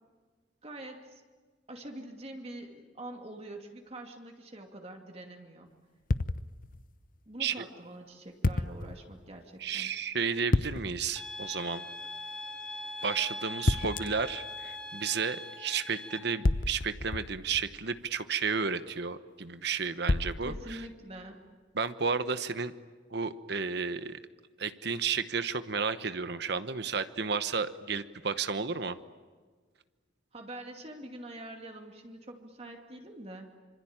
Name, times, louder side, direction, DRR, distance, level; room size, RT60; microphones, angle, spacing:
voice 1, 0.6-1.2 1.7-5.7 7.3-10.0 20.4-21.4 30.3-33.6, right 1 dB, 30° right, 3 dB, 2.5 m, -45 dB
sound 1, 6.1-6.9 8.4-9.0 10.5-11.1 13.7-14.3 16.4-17.8 20.1-20.9, left 2 dB, 45° left, 0.8 m, -30 dB
voice 2, 9.6-11.8 13.0-20.8 21.7-22.7 23.1-24.2 24.6-29.0, right 5 dB, 60° right, 12 dB, 1.0 m, -32 dB
sound 2, 11.2-16.2, left 1 dB, 5° left, 2.9 m, -41 dB
26.0 x 25.5 x 8.8 m, 1.5 s
head